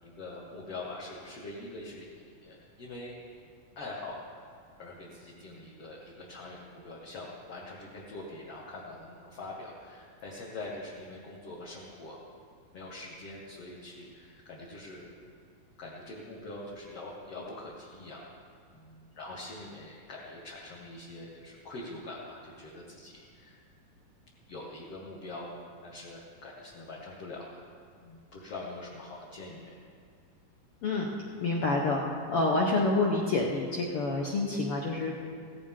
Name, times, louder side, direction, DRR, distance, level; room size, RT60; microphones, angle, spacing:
voice 1, 0.0-2.0 2.4-3.2 3.8-4.2 4.8-12.2 12.7-15.0 15.8-18.3 18.7-23.6 24.5-25.5 25.8-27.6 28.0-29.7, left 2 dB, 50° left, -5 dB, 2.1 m, -44 dB
voice 2, 31.4-32.0 32.3-35.1, left 2 dB, 80° left, -2 dB, 1.2 m, -27 dB
16.5 x 15.5 x 3.7 m, 2.2 s
omnidirectional pair, 4.0 m